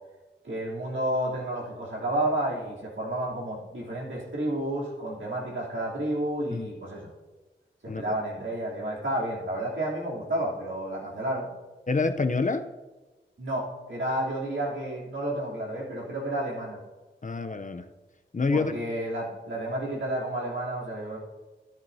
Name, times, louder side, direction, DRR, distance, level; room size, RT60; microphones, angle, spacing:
voice 1, 0.4-7.1 7.8-11.5 13.4-16.8 18.5-21.2, right 1 dB, 75° right, -5 dB, 3.2 m, -31 dB
voice 2, 11.9-12.7 17.2-17.9 18.3-18.7, left 3 dB, 40° left, 9 dB, 0.6 m, -27 dB
13.0 x 10.5 x 2.8 m, 1.2 s
cardioid pair, 50°, 20 cm